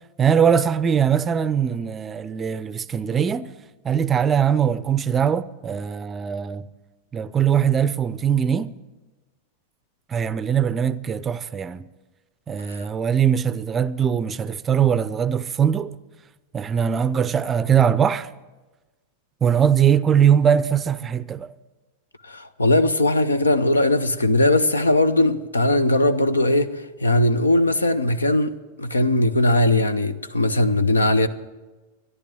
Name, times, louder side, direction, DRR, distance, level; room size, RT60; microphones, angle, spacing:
voice 1, 0.2-3.5 3.8-6.6 7.1-8.7 10.1-11.8 12.5-16.0 16.5-18.3 19.4-21.5, right 8 dB, 20° right, 0.5 m, -21 dB
voice 2, 22.2-26.7 27.0-28.5 28.8-31.3, left 1 dB, 75° left, 0.7 m, -19 dB
13.5 x 11.0 x 7.6 m
figure-of-eight pair, 90°, 0 cm